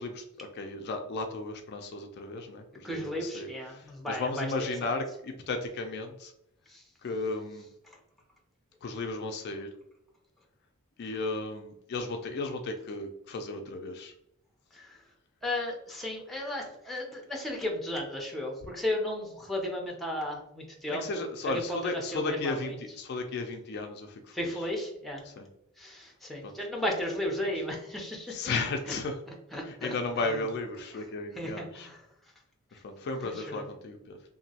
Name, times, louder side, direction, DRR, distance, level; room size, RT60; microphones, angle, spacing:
voice 1, 0.0-6.3 7.0-7.7 8.8-9.7 11.0-14.1 20.9-24.6 25.2-25.5 26.4-26.6 28.3-29.2 29.6-31.9 32.8-34.2, left 3 dB, 50° left, 5 dB, 0.3 m, -34 dB
voice 2, 2.8-4.9 6.7-6.8 14.7-15.0 15.4-22.7 24.3-25.2 25.8-28.3 28.9-29.0 29.5-30.0 30.3-30.4 30.9-31.0 31.4-32.0 33.2-33.7, left 1 dB, ahead, -1 dB, 0.6 m, -35 dB
2.9 x 2.6 x 2.7 m, 0.81 s
head